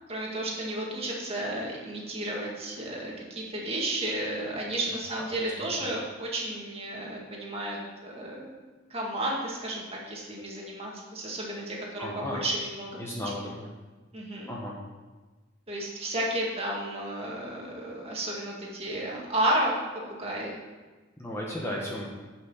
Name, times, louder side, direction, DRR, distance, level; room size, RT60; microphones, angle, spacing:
voice 1, 0.1-8.5 8.9-13.0 14.1-14.5 15.7-19.8 20.1-20.5, right 1 dB, 30° right, -3 dB, 2.0 m, -32 dB
voice 2, 12.0-12.4 13.0-13.7 14.5-14.8 21.2-22.1, left 1 dB, 10° left, -3 dB, 1.1 m, -34 dB
10.5 x 5.8 x 5.6 m, 1.3 s
head